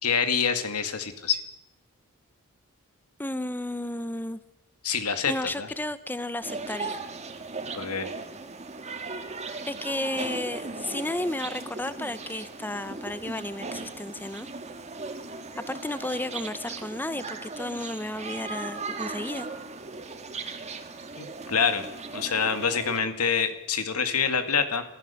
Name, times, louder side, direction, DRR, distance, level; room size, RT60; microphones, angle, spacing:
voice 1, 0.0-1.4 4.8-5.7 7.7-8.1 21.2-24.8, left 6 dB, 85° left, 9 dB, 2.2 m, -26 dB
voice 2, 3.2-4.4 5.3-7.0 9.7-14.5 15.6-19.5, left 1 dB, 10° left, 13 dB, 0.7 m, -33 dB
sound 1, 6.4-23.0, right 3 dB, 30° right, 1.8 m, -38 dB
27.0 x 14.5 x 7.0 m, 0.93 s
head